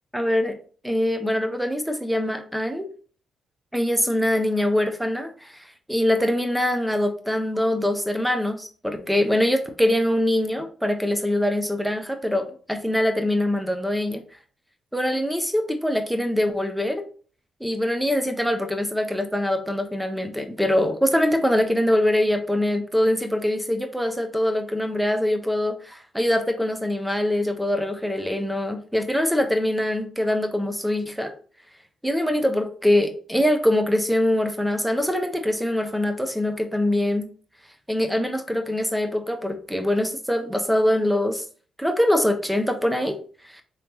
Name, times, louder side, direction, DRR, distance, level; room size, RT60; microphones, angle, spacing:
voice 1, 0.1-0.6 0.8-2.9 3.7-14.2 14.9-17.0 17.6-31.3 32.0-37.3 37.9-41.4 41.8-43.2 43.5-43.6, left 1 dB, ahead, 6 dB, 0.7 m, -23 dB
3.4 x 2.9 x 3.0 m, 0.42 s
supercardioid pair, 65°, 0 cm